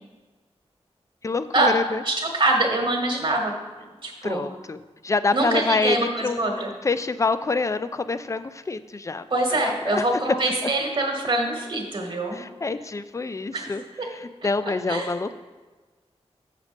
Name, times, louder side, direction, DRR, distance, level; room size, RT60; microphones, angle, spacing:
voice 1, 1.2-2.0 4.2-9.3 9.6-10.0 10.6-10.7 12.3-15.3, left 3 dB, 30° left, 12 dB, 0.4 m, -27 dB
voice 2, 2.0-3.5 4.0-4.4 5.3-6.7 9.3-12.4 13.5-13.7 14.0-14.1 14.9-15.1, right 2 dB, 50° right, 1 dB, 1.3 m, -24 dB
6.6 x 6.2 x 5.1 m, 1.3 s
wide cardioid pair, 100°, 11 cm